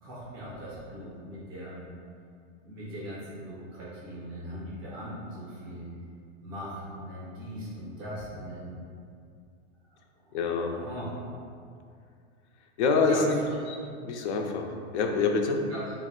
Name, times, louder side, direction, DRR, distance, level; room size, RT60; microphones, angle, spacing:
voice 1, 0.0-1.8 2.6-5.9 6.4-8.7 10.3-11.1 13.1-13.5 15.7-15.9, equal, 20° right, -7 dB, 0.3 m, -40 dB
voice 2, 10.3-10.7 12.8-13.4 13.7-14.7 14.9-15.6, left 4 dB, 90° left, 3 dB, 0.5 m, -26 dB
2.4 x 2.0 x 3.6 m, 2.3 s
supercardioid pair, 165°, 33 cm